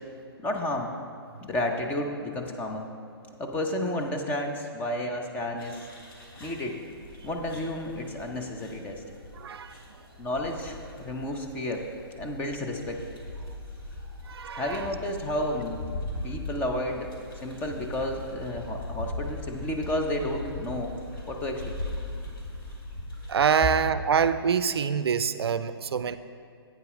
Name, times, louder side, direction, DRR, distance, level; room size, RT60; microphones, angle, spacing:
voice 1, 0.4-0.9 1.4-2.9 3.4-5.8 6.4-6.8 7.2-9.0 10.2-11.9 12.2-13.0 14.5-15.8 16.2-20.9 21.3-21.6, left 1 dB, 15° left, 3 dB, 0.6 m, -31 dB
sound 1, 5.6-23.6, left 1 dB, 60° left, 2.2 m, -40 dB
voice 2, 9.4-9.7 14.3-14.9 23.3-26.2, right 7 dB, 75° right, 13 dB, 0.4 m, -25 dB
8.5 x 6.9 x 4.9 m, 2.3 s
hypercardioid pair, 140°, 13 cm